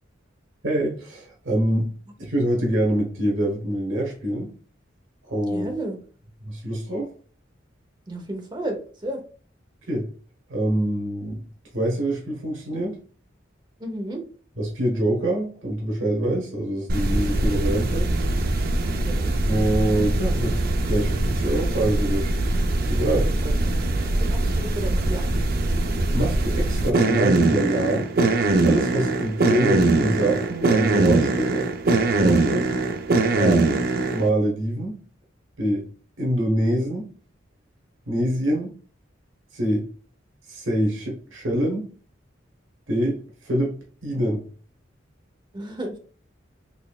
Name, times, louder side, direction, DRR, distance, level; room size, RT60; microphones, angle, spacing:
voice 1, 0.6-1.9 2.2-4.5 5.2-5.7 6.4-7.1 9.9-10.1 10.5-11.4 11.7-13.0 14.6-18.1 19.5-20.6 20.9-22.3 22.8-23.3 26.1-28.1 28.6-31.7 32.1-32.7 33.3-33.6 34.1-35.0 35.6-35.9 36.2-37.1 38.1-38.7 39.5-39.9 40.5-41.9 42.9-43.7 44.0-44.4, right 1 dB, 85° right, 1.2 m, -25 dB
voice 2, 5.5-6.0 8.1-9.2 13.8-14.2 18.8-19.3 23.2-23.7 24.0-25.2 45.5-46.0, right 1 dB, 25° right, 0.8 m, -33 dB
sound 1, 16.9-34.3, right 2 dB, 50° right, 0.4 m, -22 dB
4.2 x 3.3 x 2.3 m
head